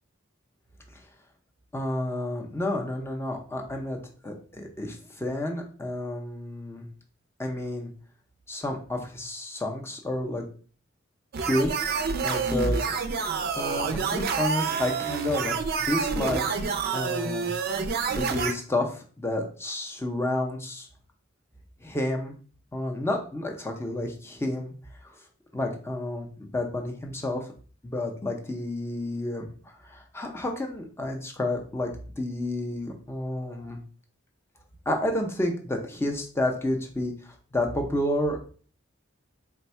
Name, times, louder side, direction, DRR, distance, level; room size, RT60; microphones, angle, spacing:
voice 1, 1.7-4.0 4.2-6.8 7.4-7.9 8.5-10.4 11.4-11.7 12.2-12.9 13.6-16.6 16.9-17.5 18.1-20.9 21.8-22.3 22.7-24.7 25.5-27.4 27.8-29.5 29.9-31.9 32.2-33.8 34.9-38.5, left 1 dB, 10° left, 2 dB, 0.5 m, -30 dB
sound 1, 11.3-18.5, right 5 dB, 50° right, 0.4 m, -28 dB
3.4 x 2.2 x 4.2 m, 0.42 s
head